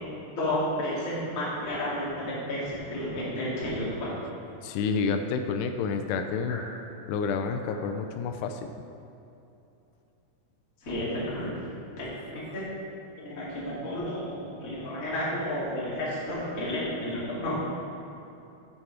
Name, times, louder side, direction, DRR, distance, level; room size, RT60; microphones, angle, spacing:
voice 1, 0.4-4.2 6.5-6.6 7.6-7.8 10.8-11.5 12.0-12.1 12.3-12.6 13.2-17.6, left 1 dB, 30° left, -7 dB, 1.8 m, -32 dB
voice 2, 4.6-6.6 7.1-8.6, left 5 dB, 85° left, 7 dB, 2.5 m, -29 dB
8.8 x 7.6 x 4.7 m, 2.8 s
omnidirectional pair, 4.8 m